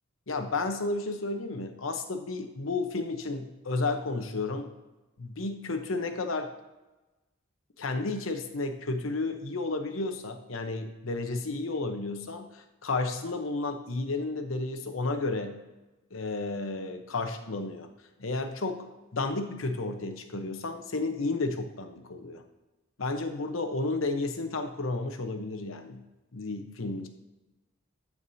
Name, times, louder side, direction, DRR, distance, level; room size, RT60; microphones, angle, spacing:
voice 1, 0.3-4.7 5.2-6.5 7.8-15.6 16.1-17.9 18.2-18.9 19.1-22.4 23.0-26.0 26.3-27.1, left 3 dB, 80° left, 6 dB, 0.9 m, -32 dB
14.0 x 4.8 x 2.7 m, 1.1 s
head